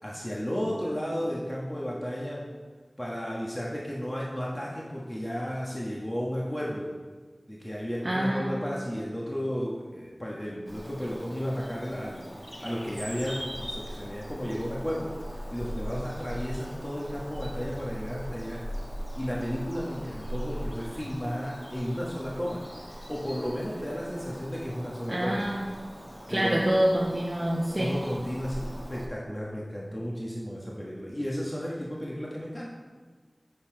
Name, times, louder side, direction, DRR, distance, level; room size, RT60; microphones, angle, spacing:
voice 1, 0.0-2.5 3.0-6.9 7.5-12.3 12.6-15.1 15.5-18.6 19.1-22.6 23.1-25.4 26.3-26.6 27.8-32.7, equal, 25° left, -4 dB, 1.2 m, -33 dB
voice 2, 8.0-8.6 25.1-25.6 26.3-28.0, right 1 dB, 35° right, -3 dB, 0.9 m, -26 dB
Bird vocalization bird call bird song, 10.7-29.1, equal, ahead, 1.3 m, -40 dB
6.7 x 5.6 x 4.4 m, 1.4 s
wide cardioid pair, 40°, 0 cm